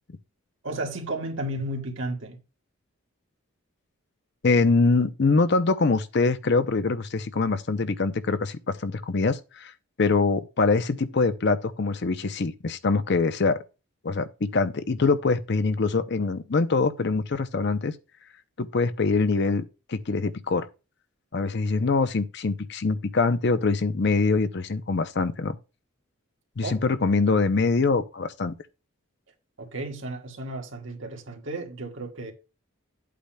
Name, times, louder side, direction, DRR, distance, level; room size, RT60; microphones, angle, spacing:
voice 1, 0.6-2.4 26.6-26.8 29.6-32.3, right 1 dB, 60° right, 1.7 m, -33 dB
voice 2, 4.4-9.7 10.0-13.6 14.0-17.9 18.6-19.6 19.9-20.7 21.3-25.6 26.6-28.5, left 4 dB, 50° left, 0.6 m, -24 dB
11.5 x 8.4 x 2.2 m
head